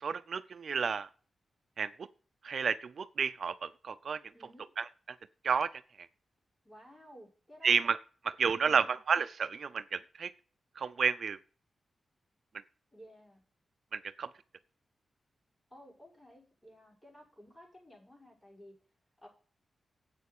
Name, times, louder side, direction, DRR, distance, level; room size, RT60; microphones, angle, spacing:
voice 1, 0.0-1.1 1.8-1.9 2.4-4.2 5.4-5.7 7.6-8.0 8.4-10.3 10.8-11.4 13.9-14.3, right 6 dB, 65° right, 12 dB, 0.6 m, -31 dB
voice 2, 4.3-4.7 6.6-7.8 8.6-9.0 12.9-13.4 15.7-18.8 19.2-19.3, equal, 20° left, -3 dB, 6.4 m, -55 dB
8.5 x 7.0 x 8.3 m, 0.40 s
wide cardioid pair, 95°, 0 cm